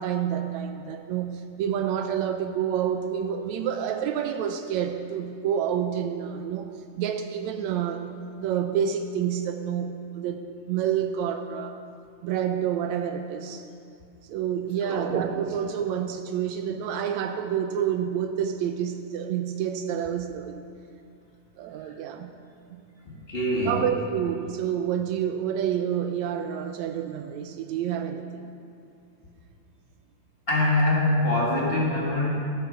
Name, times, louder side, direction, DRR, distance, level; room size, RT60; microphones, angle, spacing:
voice 1, 0.0-8.0 8.3-11.8 12.2-13.6 14.2-20.6 21.6-22.4 22.7-22.9 23.6-28.4, right 9 dB, 80° right, 7 dB, 1.6 m, -28 dB
voice 2, 14.8-15.2 21.8-21.9 23.0-23.8 30.5-32.3, left 1 dB, 25° left, -4 dB, 1.3 m, -24 dB
12.0 x 9.3 x 6.4 m, 2.5 s
omnidirectional pair, 3.6 m